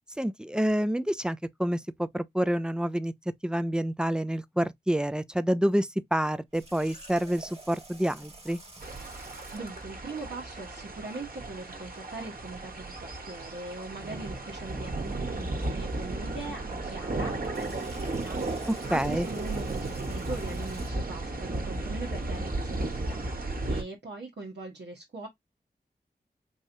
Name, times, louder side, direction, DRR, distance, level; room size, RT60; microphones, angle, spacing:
voice 1, 0.2-3.1 3.4-8.6 18.9-19.3, equal, 5° right, 0.5 m, -28 dB
Water tap faucet, 6.5-9.9 17.3-21.2, right 2 dB, 35° right, 1.8 m, -49 dB
sound 1, 8.8-23.8, right 2 dB, 55° right, 1.5 m, -34 dB
voice 2, 9.5-25.3, right 2 dB, 85° right, 1.4 m, -41 dB
4.6 x 3.0 x 2.7 m
wide cardioid pair, 65°, 17 cm